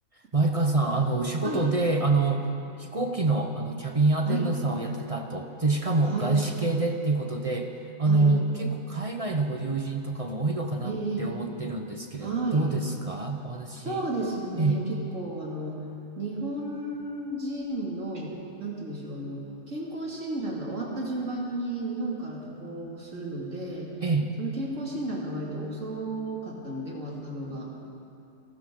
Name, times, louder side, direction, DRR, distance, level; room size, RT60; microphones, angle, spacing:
voice 1, 0.3-2.5 2.8-7.7 8.0-14.1 14.5-14.8 24.0-24.3, right 3 dB, 30° right, 4 dB, 0.8 m, -26 dB
voice 2, 10.8-11.3 12.2-12.7 13.8-15.8 16.2-18.3 18.6-23.9 24.4-27.7, right 2 dB, 65° right, -3 dB, 2.9 m, -33 dB
29.0 x 13.0 x 3.8 m, 2.9 s
omnidirectional pair, 1.4 m